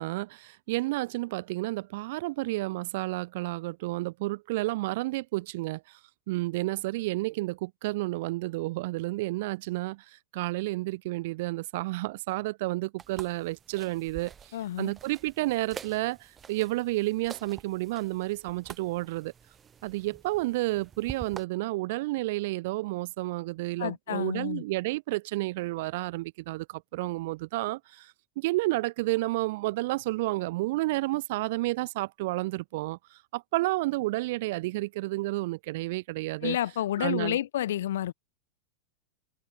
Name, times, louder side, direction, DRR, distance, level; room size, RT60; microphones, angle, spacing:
voice 1, 0.0-6.0 6.3-19.3 19.8-36.6 37.0-37.4, right 20 dB, 50° right, 0.8 m, -31 dB
sound 1, 13.0-21.4, right 7 dB, 20° right, 5.3 m, -47 dB
voice 2, 14.5-14.9 23.8-24.6 36.4-38.1, left 12 dB, 60° left, 0.6 m, -30 dB
figure-of-eight pair, 90°, 0 cm